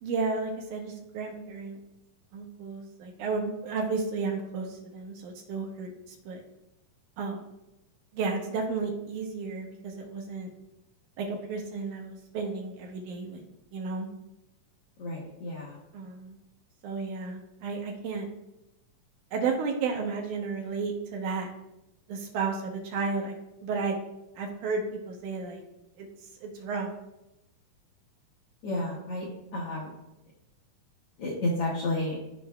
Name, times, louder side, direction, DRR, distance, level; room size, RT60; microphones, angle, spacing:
voice 1, 0.0-1.8 2.3-6.4 7.2-7.4 8.1-10.5 11.2-13.4 13.7-14.1 15.9-16.4 16.8-18.3 19.3-21.5 22.1-23.4 23.6-24.0 24.4-25.6 26.0-26.1 26.4-26.9, right 4 dB, 70° right, 1 dB, 2.3 m, -33 dB
voice 2, 15.0-15.8 28.6-29.3 29.5-29.9 31.2-32.2, left 1 dB, 60° left, -4 dB, 1.6 m, -31 dB
13.5 x 5.3 x 2.3 m, 0.90 s
omnidirectional pair, 3.8 m